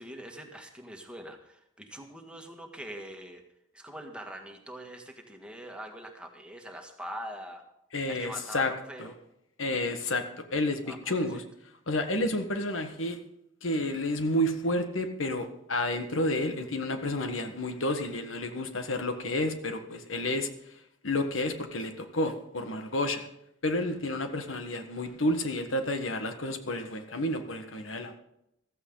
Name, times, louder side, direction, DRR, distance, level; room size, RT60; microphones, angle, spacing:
voice 1, 0.0-3.4 3.7-7.6 8.1-9.1 10.8-11.4, right 1 dB, 5° right, 3 dB, 1.7 m, -43 dB
voice 2, 7.9-8.7 9.0-9.1 9.6-10.2 10.5-10.8 11.1-11.4 11.9-13.2 13.6-20.5 21.0-23.3 23.6-28.2, left 1 dB, 90° left, 7 dB, 1.5 m, -30 dB
15.0 x 14.0 x 3.9 m, 0.80 s
head